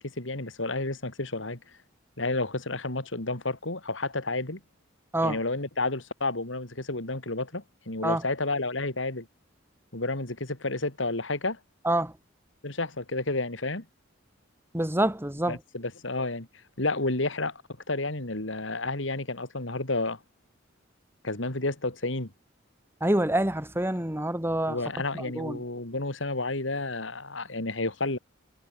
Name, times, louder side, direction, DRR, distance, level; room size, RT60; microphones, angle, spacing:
voice 1, 0.0-1.6 2.2-4.6 5.2-9.3 9.9-11.6 12.6-13.8 15.5-16.5 16.8-17.6 17.9-20.2 21.2-22.3 24.7-28.2, left 2 dB, 70° left, 3.2 m, -31 dB
voice 2, 14.7-15.6 23.0-24.8 25.1-25.6, right 1 dB, 10° right, 2.4 m, -26 dB
head